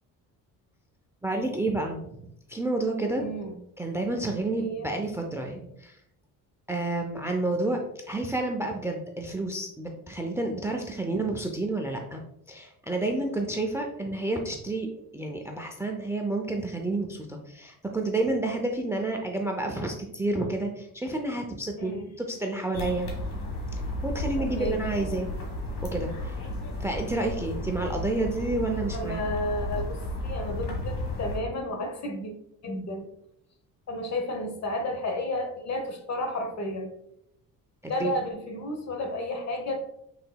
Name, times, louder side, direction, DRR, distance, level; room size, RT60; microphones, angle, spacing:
voice 1, 1.2-2.1 2.5-3.3 3.8-6.0 6.7-7.8 8.1-12.2 12.5-14.9 15.1-23.1 24.0-25.3 25.8-26.4 26.8-29.2 37.8-38.1, right 2 dB, 5° right, 3 dB, 0.5 m, -30 dB
voice 2, 3.2-3.5 4.6-4.9 21.8-22.1 24.4-24.8 28.9-32.3 32.6-33.1 33.9-36.9 37.9-39.8, left 1 dB, 50° left, 4 dB, 1.0 m, -32 dB
sound 1, 22.7-31.4, left 1 dB, 65° left, 1.5 m, -33 dB
5.8 x 3.9 x 2.2 m, 0.78 s
cardioid pair, 115°, 36 cm